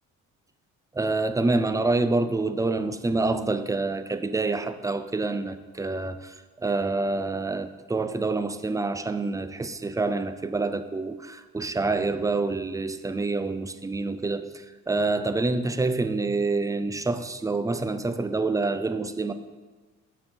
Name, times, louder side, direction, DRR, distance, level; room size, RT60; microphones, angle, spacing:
voice 1, 0.9-19.3, right 3 dB, 10° right, 0.4 m, -27 dB
7.8 x 5.5 x 4.2 m
cardioid pair, 90°, 30 cm